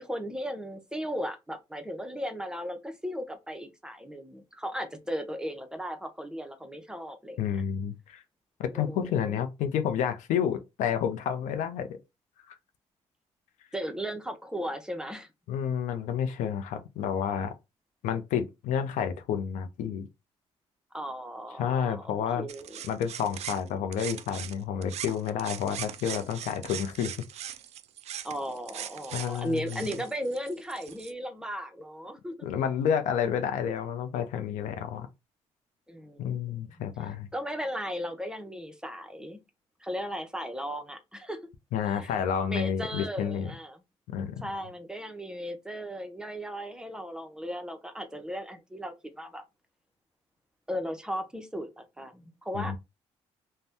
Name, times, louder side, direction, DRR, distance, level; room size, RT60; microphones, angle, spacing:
voice 1, 0.0-7.6 8.7-9.4 13.7-15.3 20.9-22.8 28.2-32.5 35.9-36.9 37.3-39.4 39.8-41.4 41.9-42.1 42.4-43.8 44.4-49.4 50.7-52.7, equal, 5° right, 0.6 m, -36 dB
voice 2, 7.4-8.2 8.6-12.0 12.5-12.6 15.5-17.5 18.0-20.1 21.6-22.5 22.9-27.2 29.1-29.9 32.4-35.1 36.2-37.3 41.7-43.5 44.1-44.4 52.5-52.8, left 8 dB, 80° left, 0.5 m, -30 dB
sound 1, 22.5-24.6 24.8-31.1, right 10 dB, 60° right, 0.4 m, -40 dB
2.6 x 2.1 x 3.4 m
supercardioid pair, 65°, 12 cm